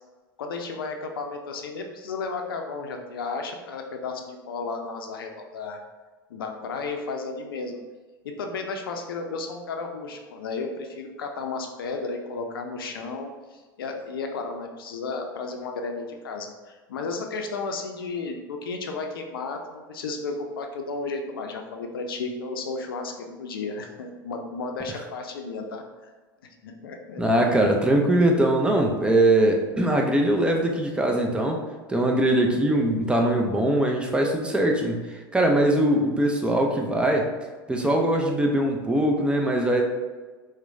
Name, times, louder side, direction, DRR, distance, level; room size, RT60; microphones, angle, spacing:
voice 1, 0.4-5.8 6.3-7.8 8.2-25.8 26.6-27.2, left 4 dB, 80° left, 4 dB, 0.5 m, -33 dB
voice 2, 27.2-31.6 31.9-37.3 37.7-39.8, right 1 dB, 10° right, 1 dB, 0.5 m, -21 dB
4.4 x 2.1 x 2.6 m, 1.3 s
hypercardioid pair, 85°, 12 cm